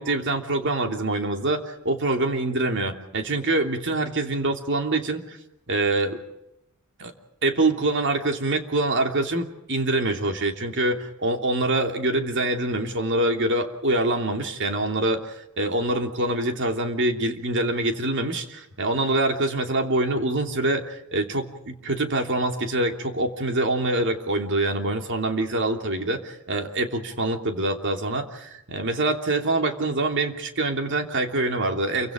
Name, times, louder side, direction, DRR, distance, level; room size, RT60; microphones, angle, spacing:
voice 1, 0.0-5.4 5.7-6.2 7.0-7.1 7.4-32.1, right 2 dB, 55° right, 4 dB, 3.0 m, -25 dB
29.0 x 24.5 x 5.1 m, 0.84 s
head